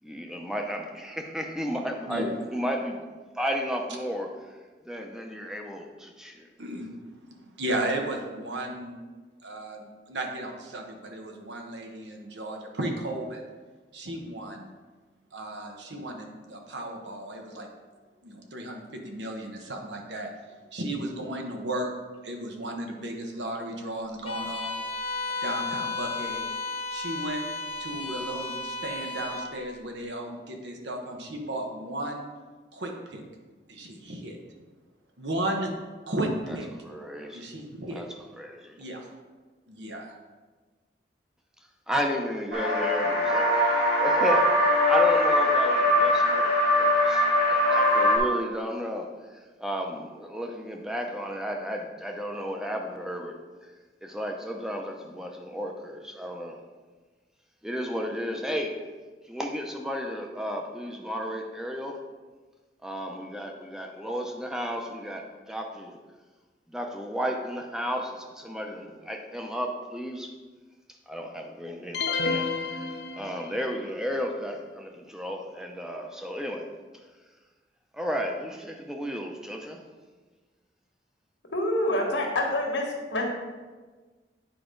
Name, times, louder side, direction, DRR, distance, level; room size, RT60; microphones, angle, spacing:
voice 1, 0.0-3.0 3.3-4.6 4.8-6.5 36.8-37.5 37.9-38.1 38.4-38.8 41.9-43.6 44.0-44.5 44.9-53.3 54.0-56.6 57.6-58.8 59.3-62.0 62.8-66.0 66.7-70.3 71.1-72.9 73.2-76.7 77.9-79.8, equal, 5° right, 2 dB, 0.6 m, -33 dB
voice 2, 6.6-6.9 7.6-9.0 9.4-13.4 13.9-14.7 15.3-17.7 18.2-20.3 20.7-21.9 22.2-24.8 25.4-26.5 26.9-27.4 27.8-32.3 32.7-33.2 33.7-34.4 35.2-35.7 36.1-36.7 37.3-38.0 38.8-39.0 39.7-40.1, right 1 dB, 85° right, 2 dB, 1.1 m, -34 dB
Bowed string instrument, 24.3-29.5, left 3 dB, 30° left, 0.7 m, -33 dB
sound 1, 42.5-48.2, left 1 dB, 65° right, 1.6 m, -22 dB
sound 2, 71.9-73.8, left 4 dB, 65° left, 0.6 m, -30 dB
voice 3, 81.4-83.2, left 1 dB, 85° left, 0 dB, 1.6 m, -27 dB
9.0 x 4.9 x 3.8 m, 1.3 s
head